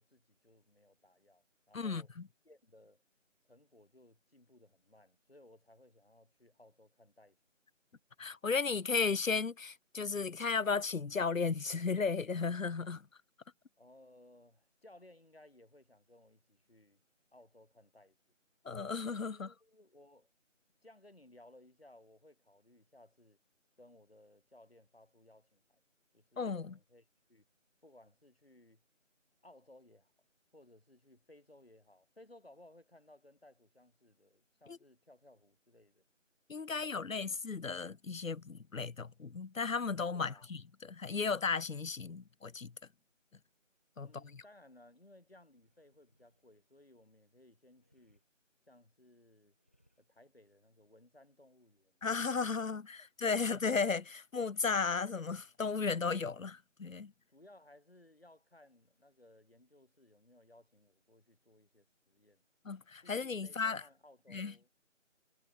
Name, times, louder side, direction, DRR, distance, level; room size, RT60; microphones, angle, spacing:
voice 1, 0.0-2.1 2.4-3.0 3.4-7.4 13.8-17.0 17.3-18.2 19.3-20.3 20.8-23.4 23.8-25.8 26.1-27.5 27.8-28.8 29.4-30.1 30.5-36.0 36.7-37.4 40.1-40.5 44.0-48.2 48.7-49.5 50.0-52.0 56.4-56.5 57.3-62.4 63.0-64.7, left 1 dB, 50° left, 2.9 m, -61 dB
voice 2, 8.2-13.0 18.6-19.5 26.4-26.8 34.7-34.8 36.5-42.7 44.0-44.4 52.0-57.1 62.6-63.8 64.3-64.5, left 5 dB, 90° left, 0.9 m, -35 dB
sound 1, 45.5-47.0 47.7-48.3 49.4-50.1, equal, 10° left, 3.2 m, -76 dB
figure-of-eight pair, 180°, 39 cm